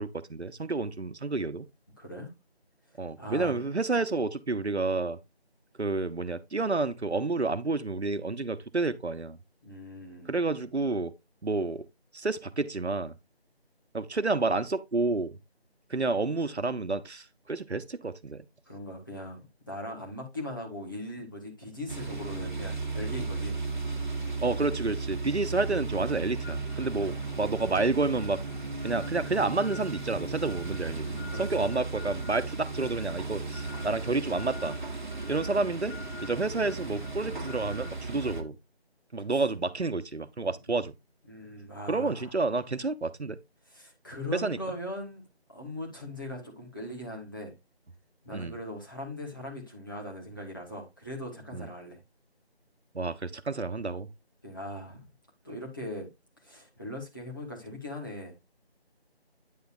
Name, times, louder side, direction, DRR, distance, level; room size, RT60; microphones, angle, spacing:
voice 1, 0.0-1.7 3.0-5.2 5.8-9.4 10.3-11.1 11.4-11.9 12.1-13.1 13.9-15.4 15.9-18.4 24.4-28.4 28.8-31.1 31.4-34.8 35.3-38.6 39.1-40.9 41.9-43.4 44.3-44.6 48.3-48.5 51.5-51.7 52.9-54.1, right 3 dB, 85° right, 1.0 m, -30 dB
voice 2, 2.0-2.3 3.2-3.6 9.6-10.3 18.6-23.5 26.9-27.2 31.0-31.7 39.3-39.4 41.3-42.3 43.6-45.2 45.5-47.5 48.2-52.0 54.4-55.1 55.4-56.1 56.4-58.4, left 1 dB, 20° left, 1.6 m, -40 dB
sound 1, 21.9-38.4, right 3 dB, 45° right, 1.4 m, -35 dB
9.2 x 6.7 x 2.6 m
figure-of-eight pair, 170°, 32 cm